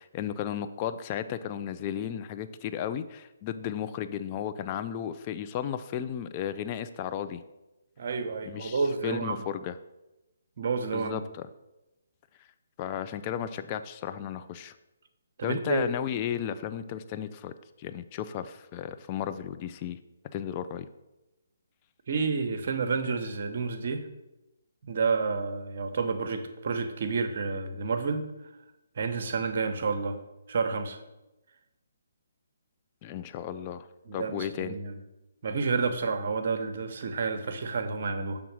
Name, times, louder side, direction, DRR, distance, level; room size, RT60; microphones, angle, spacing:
voice 1, 0.0-7.4 8.4-9.8 10.9-11.5 12.8-14.7 15.4-20.0 20.3-20.9 33.0-33.9 34.1-34.8, left 9 dB, 30° left, 11 dB, 0.4 m, -34 dB
voice 2, 8.0-9.4 10.6-11.2 15.4-15.8 22.1-24.1 24.8-28.3 29.0-30.2 30.5-31.0 34.1-35.0 35.4-38.4, right 4 dB, 55° right, 7 dB, 0.9 m, -30 dB
6.9 x 3.6 x 6.1 m, 0.98 s
figure-of-eight pair, 145°, 0 cm